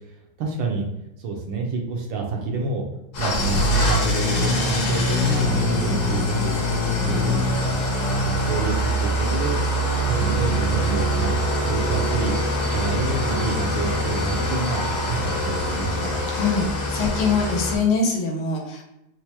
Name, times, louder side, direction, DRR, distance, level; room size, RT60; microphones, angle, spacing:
voice 1, 0.4-0.9 1.2-2.9 3.2-7.8 8.1-9.6 10.0-16.2, right 4 dB, 70° right, 0 dB, 1.3 m, -27 dB
Engine starting / Idling, 3.1-17.8, left 1 dB, 60° left, 1.1 m, -23 dB
voice 2, 16.3-18.8, left 4 dB, 90° left, 1 dB, 1.6 m, -23 dB
4.6 x 2.0 x 2.9 m, 0.87 s
omnidirectional pair, 2.3 m